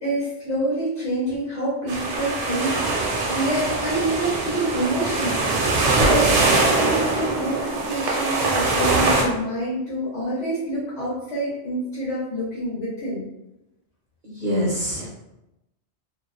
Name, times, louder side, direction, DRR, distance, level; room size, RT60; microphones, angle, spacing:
voice 1, 0.0-13.2, right 1 dB, 80° left, -8 dB, 1.1 m, -27 dB
sound 1, 1.9-9.2, right 3 dB, 85° right, 0.9 m, -22 dB
voice 2, 14.2-15.1, equal, 55° right, -5 dB, 0.6 m, -25 dB
2.5 x 2.0 x 2.4 m, 0.91 s
omnidirectional pair, 1.2 m